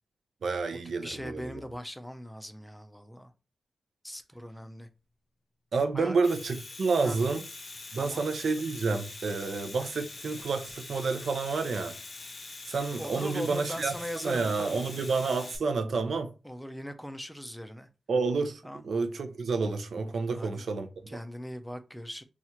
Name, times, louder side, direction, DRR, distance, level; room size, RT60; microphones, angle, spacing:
voice 1, 0.4-1.5 5.7-7.4 7.9-11.9 12.7-13.9 14.2-16.3 18.1-21.2, right 4 dB, 75° right, 0.6 m, -29 dB
voice 2, 1.0-3.3 4.0-4.9 5.9-6.2 7.0-7.2 7.9-8.3 13.0-15.1 16.4-17.9 18.6-18.8 20.3-20.6 21.1-22.2, equal, 5° left, 0.4 m, -40 dB
Domestic sounds home sounds, 6.1-15.6, left 3 dB, 45° left, 0.6 m, -44 dB
2.8 x 2.4 x 4.2 m
wide cardioid pair, 150°, 0 cm